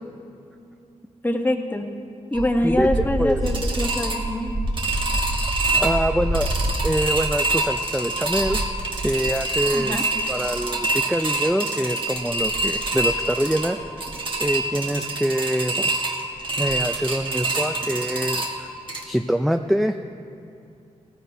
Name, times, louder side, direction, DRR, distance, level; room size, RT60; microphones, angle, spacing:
voice 1, 1.2-1.8 2.3-4.5 9.7-10.0, left 1 dB, 15° left, 4 dB, 1.1 m, -24 dB
sound 1, 2.3-19.0, right 2 dB, 40° right, 1.5 m, -25 dB
voice 2, 2.6-3.4 5.8-6.5 6.8-8.6 9.0-13.8 14.4-15.9 16.6-18.7 19.1-19.9, equal, ahead, 7 dB, 0.4 m, -25 dB
17.5 x 14.5 x 2.7 m, 2.5 s
wide cardioid pair, 90°, 13 cm